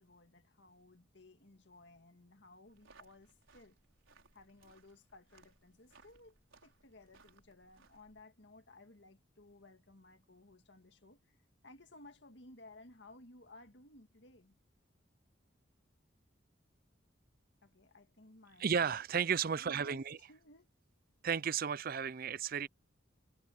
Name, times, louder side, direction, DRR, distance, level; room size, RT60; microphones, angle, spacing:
voice 1, 0.0-3.8 4.3-11.4 11.6-14.6 17.6-18.8 19.5-20.0 20.3-20.7, left 2 dB, 60° left, 2.1 m, -59 dB
sound 1, 2.7-8.2, right 4 dB, 80° right, 4.8 m, -65 dB
voice 2, 18.6-20.2 21.2-22.7, right 7 dB, 45° right, 0.5 m, -33 dB
head